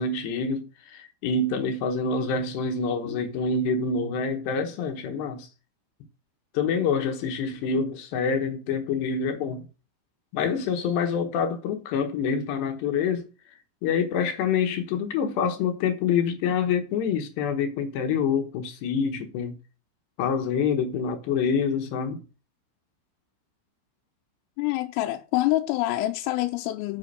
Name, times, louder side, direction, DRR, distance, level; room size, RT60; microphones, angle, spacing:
voice 1, 0.0-5.5 6.5-9.6 10.3-13.3 13.8-19.5 20.2-22.2, left 5 dB, 70° left, 2.9 m, -26 dB
voice 2, 24.6-27.0, left 16 dB, 85° left, 3.3 m, -26 dB
8.3 x 6.9 x 6.7 m
omnidirectional pair, 5.9 m